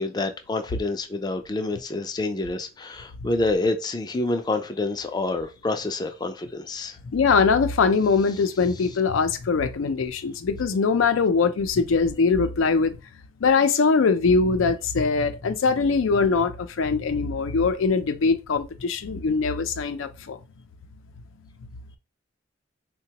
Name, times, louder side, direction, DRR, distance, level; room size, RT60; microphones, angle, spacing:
voice 1, 0.0-7.0, left 2 dB, 20° left, 0.4 m, -27 dB
voice 2, 7.1-13.0 13.4-20.4, left 4 dB, 90° left, 0.5 m, -22 dB
3.8 x 2.2 x 2.8 m
head